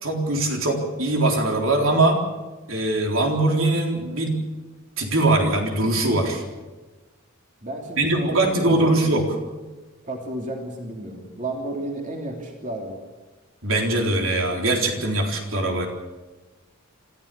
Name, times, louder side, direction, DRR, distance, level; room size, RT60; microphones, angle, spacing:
voice 1, 0.0-2.2 2.7-4.4 5.0-6.4 8.0-9.4 13.6-15.9, right 2 dB, 65° right, 2 dB, 3.9 m, -21 dB
voice 2, 7.6-9.0 10.0-13.0, right 1 dB, 35° right, 1 dB, 3.1 m, -32 dB
26.0 x 15.0 x 6.9 m, 1.2 s
head